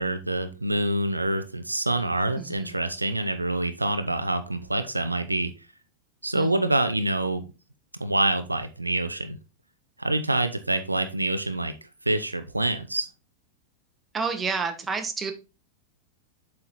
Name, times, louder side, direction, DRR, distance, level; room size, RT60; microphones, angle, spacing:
voice 1, 0.0-5.5 6.2-7.4 8.0-9.4 10.0-11.7 12.1-13.1, right 1 dB, 85° right, 9 dB, 0.6 m, -26 dB
voice 2, 14.1-15.3, right 5 dB, 15° right, 6 dB, 1.2 m, -29 dB
7.6 x 4.4 x 4.1 m, 0.29 s
figure-of-eight pair, 90°, 0 cm